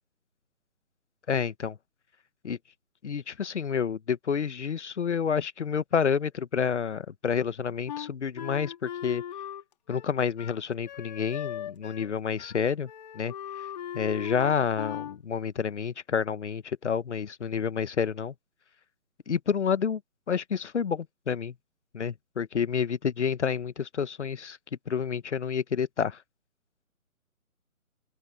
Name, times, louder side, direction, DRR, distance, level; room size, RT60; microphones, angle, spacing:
voice 1, 1.3-1.8 2.4-2.6 3.0-9.2 9.9-13.7 13.9-18.3 19.3-20.0 20.3-21.5 21.9-24.6 24.9-26.2, left 7 dB, 55° left, 1.3 m, -29 dB
Wind instrument woodwind instrument, 7.9-12.1 12.4-12.6 12.8-15.2, left 10 dB, 30° left, 3.0 m, -39 dB
open air
hypercardioid pair, 165°, 42 cm